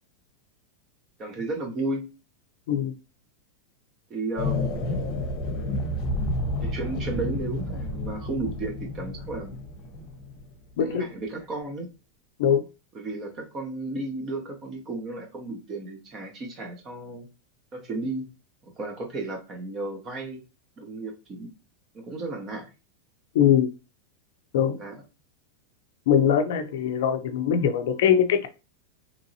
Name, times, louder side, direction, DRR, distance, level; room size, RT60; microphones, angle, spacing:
voice 1, 1.2-2.1 4.1-4.8 6.6-9.6 10.8-11.9 12.9-17.3 17.7-18.3 18.6-20.4 20.8-21.5 21.9-22.7 24.7-25.0, right 2 dB, 25° right, 2 dB, 0.7 m, -33 dB
sound 1, 4.4-10.5, left 1 dB, 45° left, 0.7 m, -30 dB
voice 2, 23.3-23.7 24.5-24.8 26.1-28.5, left 8 dB, 70° left, 6 dB, 0.4 m, -21 dB
2.9 x 2.7 x 2.6 m, 0.30 s
supercardioid pair, 145°, 0 cm